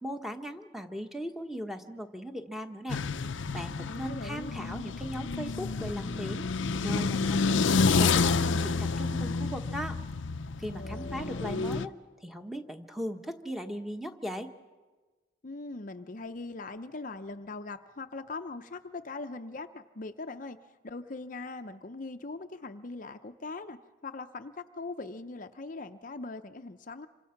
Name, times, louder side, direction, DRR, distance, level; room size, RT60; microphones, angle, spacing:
voice 1, 0.0-3.0 3.5-6.5 6.8-10.0 10.6-11.9 12.2-14.5, equal, ahead, 6 dB, 1.2 m, -38 dB
sound 1, 2.9-11.9, left 4 dB, 90° left, 0.6 m, -29 dB
voice 2, 3.8-4.6 10.7-11.6 15.4-20.6 20.8-23.8 24.0-27.1, left 3 dB, 45° left, 8 dB, 0.7 m, -41 dB
27.5 x 25.0 x 5.8 m, 1.3 s
head